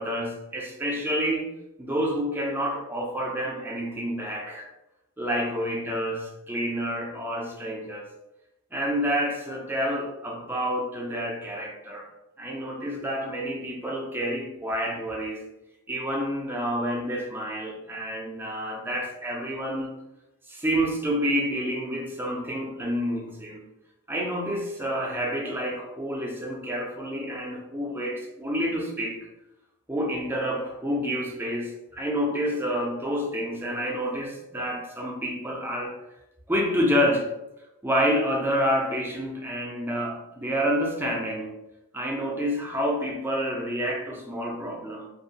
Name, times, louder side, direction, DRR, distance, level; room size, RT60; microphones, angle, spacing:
voice 1, 0.0-1.5 1.8-4.7 5.2-8.1 8.7-12.1 12.4-15.4 15.9-19.9 20.5-23.6 24.1-29.3 29.9-35.9 36.5-37.3 37.8-41.5 41.9-45.1, equal, 10° right, -1 dB, 0.4 m, -28 dB
2.7 x 2.2 x 2.7 m, 0.91 s
head